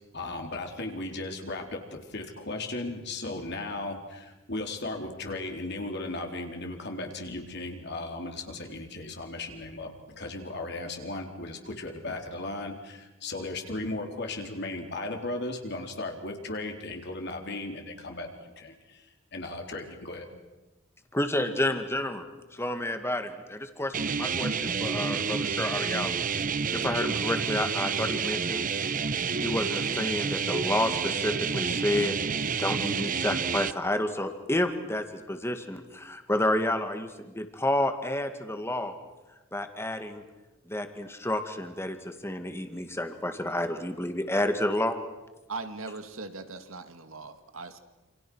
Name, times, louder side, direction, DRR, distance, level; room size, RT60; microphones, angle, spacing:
voice 1, 0.1-20.3 21.7-21.8, left 2 dB, 55° left, 3 dB, 3.9 m, -36 dB
voice 2, 21.1-22.2 22.5-26.2 26.7-28.6 29.4-32.2 32.5-38.9 39.5-40.2 40.7-45.0, left 1 dB, 10° left, 7 dB, 2.1 m, -30 dB
sound 1, 23.9-33.7, right 6 dB, 40° right, 0.8 m, -29 dB
voice 3, 45.5-47.8, right 3 dB, 80° right, 9 dB, 2.2 m, -39 dB
28.5 x 28.0 x 6.4 m, 1.1 s
head